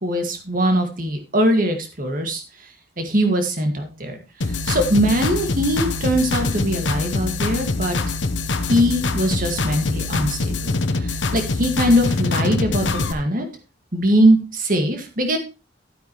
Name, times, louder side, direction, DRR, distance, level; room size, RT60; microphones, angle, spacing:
voice 1, 0.0-2.7 3.0-8.0 8.7-13.5 13.9-15.4, equal, 50° right, 5 dB, 2.0 m, -21 dB
sound 1, 4.4-13.1, left 3 dB, 90° left, 1.0 m, -24 dB
12.0 x 8.9 x 3.1 m, 0.29 s
head